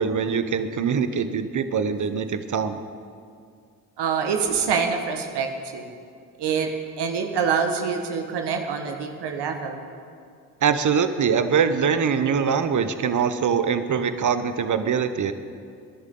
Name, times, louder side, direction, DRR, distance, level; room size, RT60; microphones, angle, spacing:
voice 1, 0.0-2.8 10.6-15.3, right 6 dB, 40° right, 10 dB, 1.1 m, -23 dB
voice 2, 4.0-5.9 6.4-6.7 7.0-9.8, right 6 dB, 60° right, 4 dB, 1.7 m, -25 dB
26.5 x 11.0 x 3.9 m, 2.3 s
hypercardioid pair, 45°, 45 cm